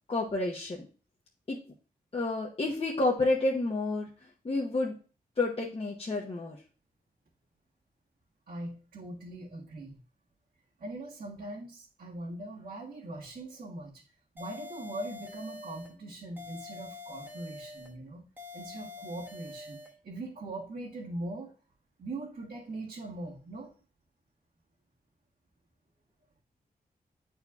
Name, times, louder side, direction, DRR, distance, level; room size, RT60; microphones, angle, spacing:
voice 1, 0.1-0.9 1.5-1.6 2.1-4.1 4.4-5.0 5.4-6.6, left 2 dB, 40° left, -2 dB, 1.0 m, -29 dB
voice 2, 8.5-10.0 10.8-13.9 14.3-18.2 18.5-19.8 20.0-21.5 22.0-23.7, right 2 dB, 75° right, -8 dB, 1.7 m, -41 dB
sound 1, 14.4-16.0 16.4-18.0 18.4-20.0, left 4 dB, 10° right, 1.1 m, -46 dB
9.4 x 4.3 x 2.4 m, 0.38 s
wide cardioid pair, 80°, 16 cm